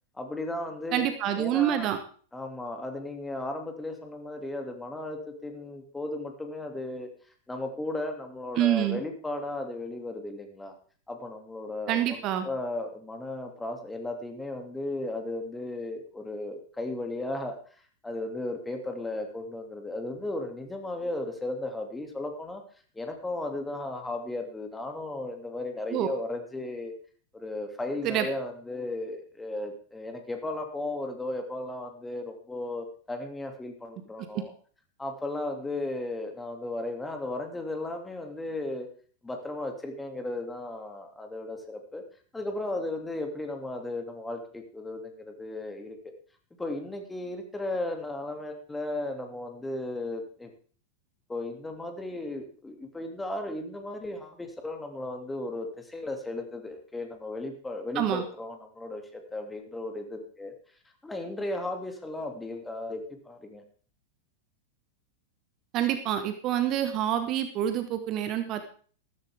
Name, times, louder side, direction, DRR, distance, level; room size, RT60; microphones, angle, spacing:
voice 1, 0.1-1.1 1.3-1.9 2.3-7.1 7.5-10.8 11.1-12.2 12.4-17.5 18.0-22.6 22.9-26.9 27.3-34.5 35.0-38.9 39.2-42.0 42.3-46.0 46.6-50.5 51.3-60.5 61.0-63.6, left 2 dB, 10° left, 4 dB, 2.4 m, -35 dB
voice 2, 0.9-2.0 8.6-9.0 11.9-12.4 25.9-26.1 28.0-28.3 57.9-58.2 65.7-68.6, right 11 dB, 35° right, 9 dB, 1.2 m, -27 dB
14.0 x 13.5 x 3.5 m, 0.44 s
figure-of-eight pair, 90°, 0 cm